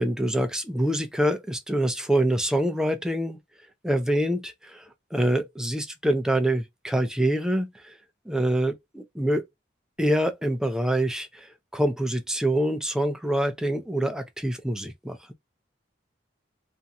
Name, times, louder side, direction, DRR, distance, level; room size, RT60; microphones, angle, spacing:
voice 1, 0.0-3.4 3.8-7.9 8.3-9.4 10.0-11.5 11.7-15.2, right 1 dB, 5° right, 0.5 m, -25 dB
2.5 x 2.3 x 2.7 m
head